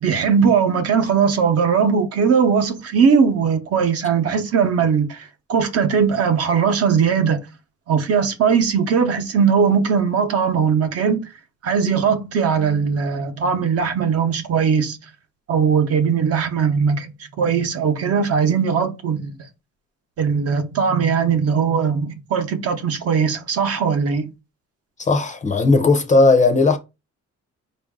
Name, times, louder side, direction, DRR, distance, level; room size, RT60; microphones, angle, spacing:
voice 1, 0.0-7.4 7.9-11.2 11.6-15.0 15.5-17.1 17.4-19.3 20.2-24.3, right 6 dB, 55° right, 0.8 m, -19 dB
voice 2, 25.0-26.8, left 3 dB, 25° left, 0.5 m, -16 dB
5.2 x 2.5 x 3.5 m
cardioid pair, 180°, 29 cm